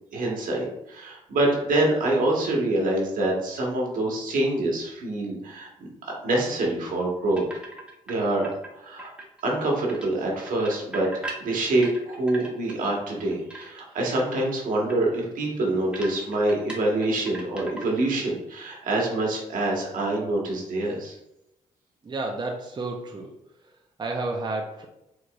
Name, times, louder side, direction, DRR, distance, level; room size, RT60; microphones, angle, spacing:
voice 1, 0.1-5.9 6.2-7.4 8.1-8.5 8.8-9.1 9.4-11.1 11.4-21.1, right 2 dB, 70° right, -1 dB, 1.2 m, -25 dB
sound 1, 7.4-8.1 8.4-9.6 9.9-12.8 13.2-13.9 14.2-14.5 14.9-15.0 15.2-15.3 15.9-18.2 18.4-18.8, right 2 dB, 5° right, 1.0 m, -40 dB
voice 2, 22.0-23.4 23.6-24.9, right 2 dB, 30° right, 2 dB, 0.6 m, -32 dB
4.8 x 3.0 x 2.3 m, 0.88 s
supercardioid pair, 65°, 14 cm